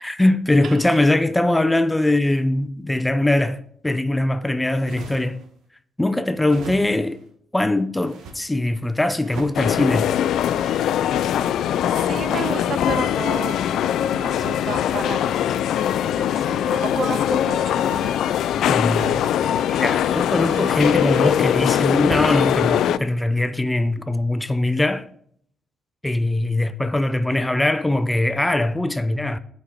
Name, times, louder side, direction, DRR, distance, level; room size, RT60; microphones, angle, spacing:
voice 1, 0.0-5.4 6.0-7.2 7.5-10.1 18.7-19.2 19.7-25.1 26.0-29.4, left 1 dB, 10° left, 0.5 m, -21 dB
voice 2, 0.6-1.0 11.9-13.6 14.0-15.2 15.5-15.6 16.1-17.8, right 5 dB, 55° right, 0.7 m, -31 dB
sound 1, 4.6-5.5 6.3-7.2 8.0-8.4 9.1-9.6 10.3-11.8 12.8-16.6 17.4-18.2 18.8-21.5 22.1-22.6, right 3 dB, 80° right, 1.4 m, -41 dB
sound 2, 9.5-23.0, left 10 dB, 75° left, 0.3 m, -21 dB
7.3 x 5.3 x 6.5 m
cardioid pair, 90°, 0 cm